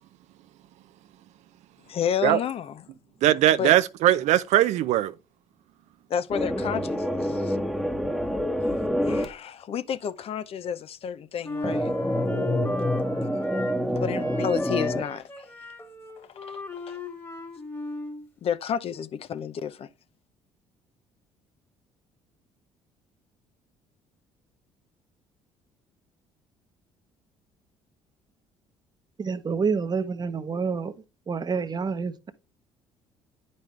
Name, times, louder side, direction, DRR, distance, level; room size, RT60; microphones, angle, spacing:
voice 1, 1.9-2.8 3.6-3.7 6.1-7.6 9.0-11.9 13.8-15.5 16.2-16.6 16.9-17.0 18.4-19.9, left 8 dB, 50° left, 0.6 m, -31 dB
voice 2, 3.2-5.1, right 13 dB, 65° right, 0.6 m, -20 dB
sound 1, 6.3-9.3 11.6-15.0, equal, ahead, 1.1 m, -27 dB
Wind instrument woodwind instrument, 11.4-13.9 14.2-18.3, left 3 dB, 20° left, 1.8 m, -37 dB
voice 3, 29.2-30.9 31.3-32.3, right 5 dB, 35° right, 1.0 m, -28 dB
9.1 x 5.4 x 3.2 m
supercardioid pair, 65°, 12 cm